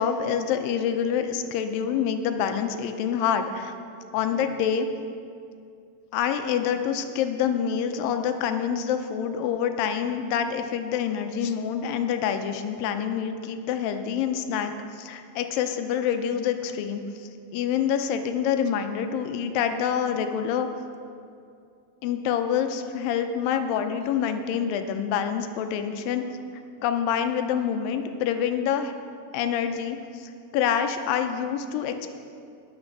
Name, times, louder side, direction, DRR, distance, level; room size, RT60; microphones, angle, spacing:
voice 1, 0.0-3.7 4.1-4.9 6.1-20.7 22.0-26.2 26.8-28.9 29.3-32.1, left 8 dB, 85° left, 7 dB, 2.4 m, -26 dB
9.4 x 9.2 x 6.5 m, 2.4 s
omnidirectional pair, 4.0 m